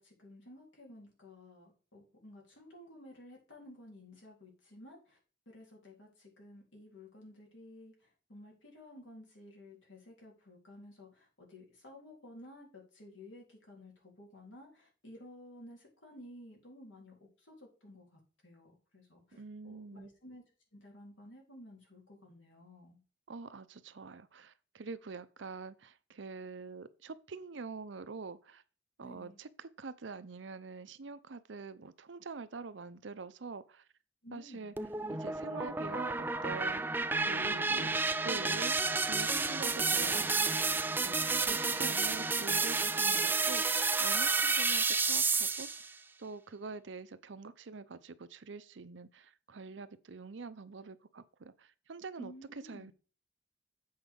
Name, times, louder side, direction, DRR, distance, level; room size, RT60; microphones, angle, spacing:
voice 1, 0.0-5.2 5.5-20.4 20.7-23.0 29.0-29.4 34.2-34.7 52.2-52.9, left 1 dB, 90° left, 3.7 m, -54 dB
voice 2, 19.4-20.1 23.3-28.6 29.0-33.9 34.3-34.7 35.1-36.1 36.4-38.8 39.1-40.6 41.0-45.9 46.2-52.3 52.7-52.9, right 4 dB, 80° right, 0.6 m, -45 dB
sound 1, 34.8-45.9, right 4 dB, 10° right, 0.3 m, -31 dB
8.0 x 4.7 x 5.1 m
head